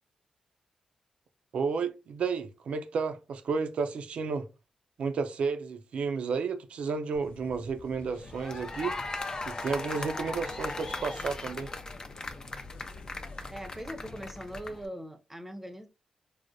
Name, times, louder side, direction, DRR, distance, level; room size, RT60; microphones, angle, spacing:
voice 1, 1.5-4.5 5.0-9.0 9.5-11.7, right 5 dB, 75° right, 0.5 m, -32 dB
sound 1, 7.1-14.8, left 3 dB, 85° left, 0.6 m, -49 dB
sound 2, 8.2-14.9, left 3 dB, 35° left, 0.5 m, -38 dB
voice 2, 13.5-15.9, equal, 10° right, 0.6 m, -41 dB
4.8 x 2.1 x 2.5 m
cardioid pair, 75°, 2 cm